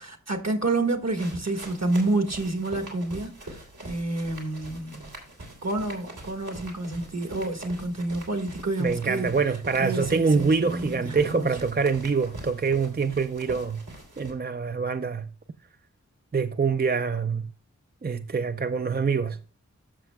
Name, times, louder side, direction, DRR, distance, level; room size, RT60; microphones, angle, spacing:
voice 1, 0.0-5.1 5.6-9.3 9.8-11.6, right 2 dB, 60° right, 1.5 m, -29 dB
sound 1, 1.1-14.3, right 1 dB, 85° right, 3.2 m, -44 dB
voice 2, 8.8-13.8 14.2-15.3 16.3-17.4 18.0-19.4, right 5 dB, 35° right, 0.5 m, -25 dB
14.0 x 6.2 x 2.2 m
wide cardioid pair, 60°, 30 cm